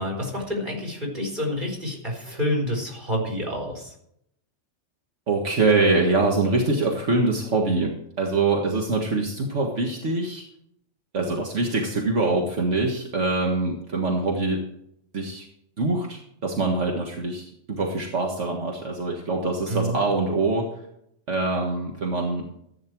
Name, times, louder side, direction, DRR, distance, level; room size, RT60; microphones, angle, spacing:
voice 1, 0.0-3.9 19.7-20.0, equal, 40° right, 0 dB, 4.7 m, -28 dB
voice 2, 5.3-10.4 11.1-14.6 15.1-15.5 15.8-20.7 21.3-22.4, right 3 dB, 75° right, 0 dB, 2.0 m, -24 dB
14.5 x 9.6 x 4.6 m, 0.72 s
omnidirectional pair, 1.2 m